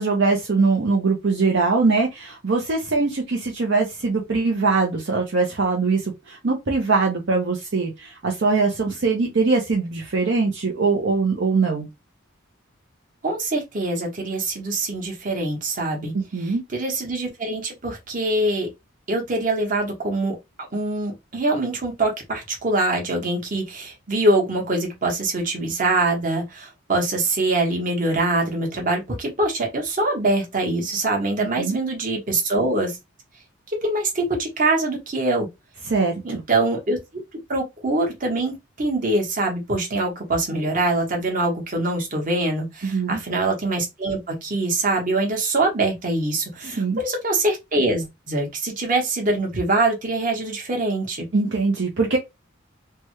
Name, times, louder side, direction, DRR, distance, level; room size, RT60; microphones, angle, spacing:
voice 1, 0.0-11.9 16.1-16.6 31.6-31.8 35.9-36.1 42.8-43.2 46.6-47.0 51.3-52.2, right 4 dB, 60° right, 0.6 m, -22 dB
voice 2, 13.2-16.1 16.4-18.7 19.1-20.4 20.7-33.0 33.7-35.5 36.2-37.0 37.5-51.3, right 2 dB, 40° right, 1.1 m, -24 dB
3.3 x 2.2 x 3.0 m
head